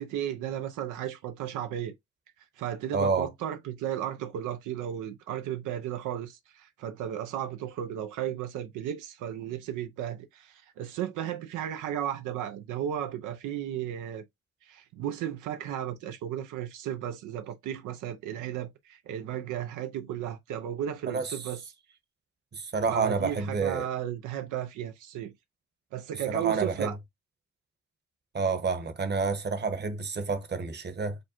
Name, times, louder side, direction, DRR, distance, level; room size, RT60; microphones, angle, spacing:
voice 1, 0.0-1.9 2.6-14.2 14.6-21.6 22.9-25.3 25.9-27.0, right 10 dB, 90° right, 0.7 m, -34 dB
voice 2, 2.9-3.3 21.1-21.4 22.5-23.9 26.3-26.9 28.3-31.2, right 4 dB, 35° right, 1.1 m, -29 dB
5.1 x 2.2 x 4.3 m
cardioid pair, 90°, 30 cm